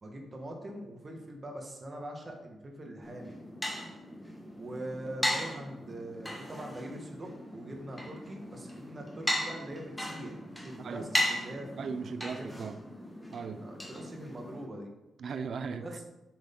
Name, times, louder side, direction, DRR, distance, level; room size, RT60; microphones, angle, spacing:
voice 1, 0.0-3.4 4.6-11.7 12.3-12.5 13.6-14.9 15.8-16.0, right 1 dB, 30° right, 1 dB, 1.4 m, -43 dB
sound 1, 3.0-14.7, left 1 dB, 5° left, 1.2 m, -37 dB
voice 2, 10.8-11.1 11.7-12.8 13.3-13.6 15.2-15.9, right 5 dB, 55° right, 11 dB, 0.5 m, -37 dB
8.2 x 6.3 x 3.8 m, 0.94 s
wide cardioid pair, 160°, 0 cm